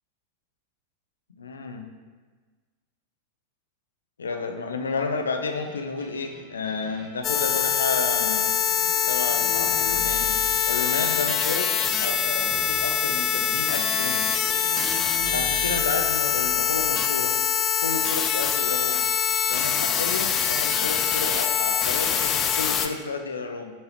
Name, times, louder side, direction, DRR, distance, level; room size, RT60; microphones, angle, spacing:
voice 1, 1.4-1.8 4.2-8.4 9.1-10.3 10.7-11.7 12.0-14.4 15.3-17.4 17.8-19.0 19.5-23.7, left 4 dB, 70° left, 5 dB, 0.6 m, -31 dB
sound 1, 5.5-16.9, right 2 dB, 30° right, 1.6 m, -42 dB
sound 2, 7.2-22.9, left 8 dB, 30° left, 0.4 m, -24 dB
7.1 x 4.7 x 3.0 m, 1.4 s
figure-of-eight pair, 90°, 0 cm